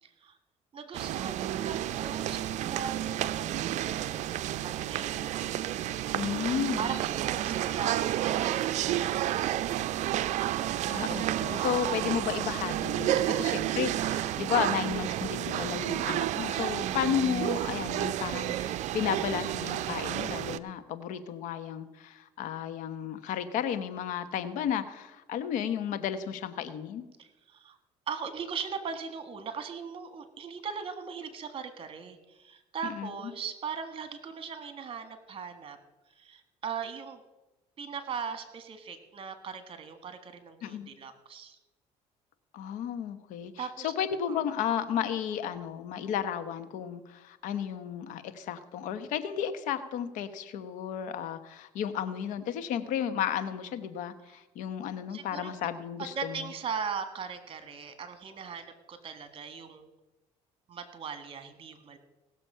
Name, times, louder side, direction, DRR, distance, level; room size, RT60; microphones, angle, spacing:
voice 1, 0.0-0.4 0.7-5.8 6.8-9.7 11.4-11.8 13.2-13.7 27.2-27.8 28.1-35.8 36.1-37.2 37.8-41.6 43.6-43.9 44.3-44.4 54.3-54.4 55.1-55.5 56.0-59.9 60.7-62.0, right 6 dB, 45° right, 9 dB, 1.6 m, -39 dB
sound 1, 0.9-20.6, right 13 dB, 65° right, 0.5 m, -31 dB
voice 2, 6.1-6.8 10.9-27.0 32.8-33.3 40.6-40.9 42.5-56.5, left 9 dB, 75° left, 11 dB, 1.0 m, -33 dB
18.0 x 6.8 x 5.6 m, 1.1 s
supercardioid pair, 95°, 13 cm